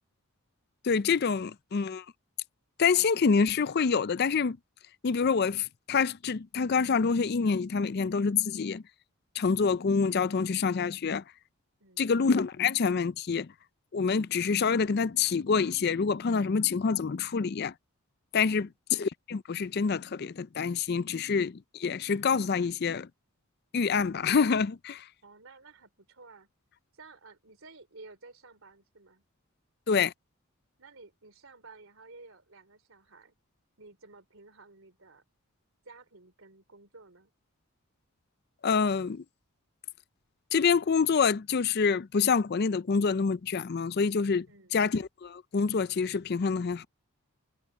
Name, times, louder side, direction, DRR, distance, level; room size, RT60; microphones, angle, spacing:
voice 1, 0.8-2.0 2.8-4.6 5.0-8.8 9.4-11.2 12.0-13.5 13.9-17.7 18.3-23.1 23.7-25.1 29.9-30.1 38.6-39.2 40.5-44.5 44.7-46.9, left 5 dB, 45° left, 0.4 m, -27 dB
voice 2, 11.8-12.1 18.4-18.8 25.2-26.5 26.9-29.2 30.8-33.3 33.8-35.2 35.8-37.3 44.5-44.8, right 3 dB, 65° right, 3.4 m, -53 dB
head